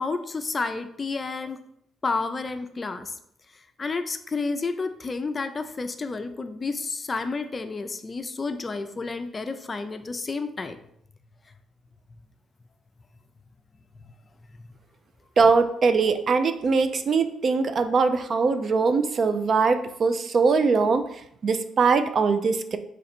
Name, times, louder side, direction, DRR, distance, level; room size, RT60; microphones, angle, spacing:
voice 1, 0.0-1.6 2.0-3.1 3.8-10.8 14.6-14.7, left 3 dB, 30° left, 9 dB, 0.4 m, -30 dB
voice 2, 15.4-21.0 21.4-22.8, right 4 dB, 50° right, 9 dB, 0.4 m, -21 dB
3.9 x 3.1 x 4.3 m, 0.72 s
cardioid pair, 90°, 0 cm